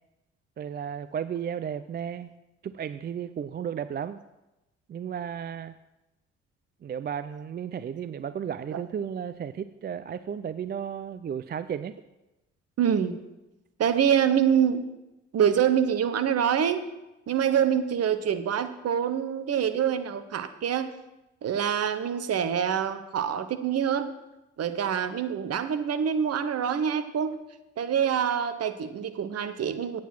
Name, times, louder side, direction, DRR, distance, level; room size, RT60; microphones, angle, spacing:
voice 1, 0.6-2.3 2.6-4.2 4.9-5.7 6.8-12.0, right 8 dB, 30° right, 14 dB, 0.4 m, -34 dB
voice 2, 12.8-13.2 13.8-14.8 15.3-16.8 17.3-20.9 21.4-24.1 24.6-27.4 27.8-30.0, right 8 dB, 50° right, 11 dB, 1.0 m, -25 dB
9.2 x 7.3 x 6.0 m, 0.97 s
hypercardioid pair, 50°, 33 cm